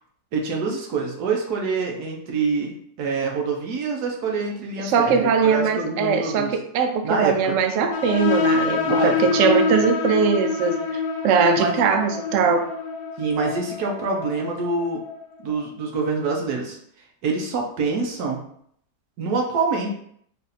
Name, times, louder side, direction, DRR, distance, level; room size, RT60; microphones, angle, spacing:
voice 1, 0.3-6.5 7.0-7.6 8.8-9.4 11.6-11.7 13.2-15.0 15.4-16.8 17.2-18.4 19.2-19.9, right 4 dB, 65° right, 0 dB, 1.3 m, -26 dB
voice 2, 4.8-12.6, right 5 dB, 90° right, 5 dB, 0.6 m, -21 dB
sound 1, 7.9-15.2, left 5 dB, 70° left, 1.3 m, -26 dB
4.1 x 2.5 x 4.1 m, 0.65 s
omnidirectional pair, 2.0 m